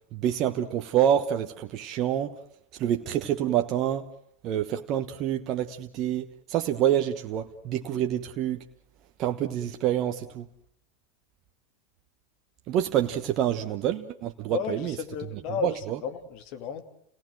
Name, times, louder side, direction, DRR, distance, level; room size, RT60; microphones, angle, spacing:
voice 1, 0.1-2.4 2.8-4.1 4.4-8.7 9.2-10.5 12.7-14.9 15.6-16.0, right 10 dB, 45° right, 1.2 m, -27 dB
voice 2, 14.5-16.8, left 7 dB, 55° left, 2.6 m, -33 dB
29.0 x 18.0 x 7.7 m
hypercardioid pair, 95°, 0 cm